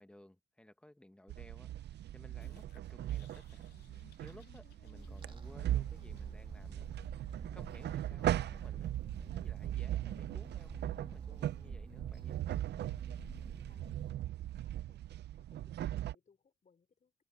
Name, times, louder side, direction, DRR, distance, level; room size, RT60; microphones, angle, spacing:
voice 1, 0.0-3.7 4.2-6.9 7.3-8.9 9.2-12.4, left 1 dB, 5° left, 1.5 m, -58 dB
sound 1, 1.3-16.1, right 13 dB, 60° right, 0.5 m, -39 dB
sound 2, 2.4-7.4, left 8 dB, 55° left, 3.1 m, -64 dB
sound 3, 5.0-14.1, right 3 dB, 25° right, 2.0 m, -50 dB
voice 2, 13.7-17.1, left 5 dB, 40° left, 5.6 m, -71 dB
cardioid pair, 90°, 20 cm